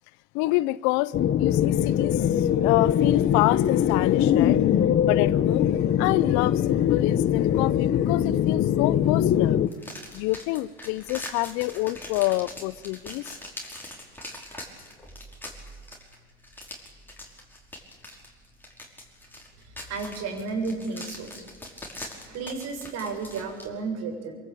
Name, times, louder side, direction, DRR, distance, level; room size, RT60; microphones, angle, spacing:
voice 1, 0.3-4.7 5.1-9.6 10.1-13.4, left 19 dB, 60° left, 0.7 m, -27 dB
sound 1, 1.1-9.7, left 10 dB, 35° left, 1.0 m, -22 dB
sound 2, 9.7-23.7, left 1 dB, 5° left, 5.2 m, -42 dB
voice 2, 19.6-21.3 22.3-24.3, right 4 dB, 50° right, 7.1 m, -32 dB
25.0 x 23.0 x 9.1 m
supercardioid pair, 110°, 34 cm